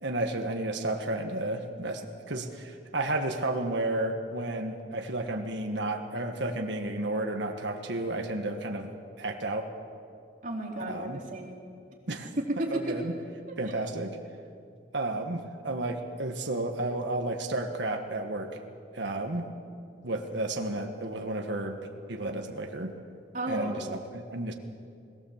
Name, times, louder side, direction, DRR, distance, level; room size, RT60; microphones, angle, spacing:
voice 1, 0.0-9.7 10.8-11.2 12.1-12.3 12.7-13.2 13.6-14.2 14.9-18.6 18.9-19.5 20.0-21.8 22.1-22.9 23.5-24.5, right 2 dB, 75° right, 3 dB, 1.5 m, -32 dB
voice 2, 10.4-11.5 12.4-13.0 13.5-13.6 23.3-23.7, right 1 dB, 45° right, -1 dB, 3.3 m, -32 dB
21.0 x 18.5 x 7.3 m, 2.3 s
head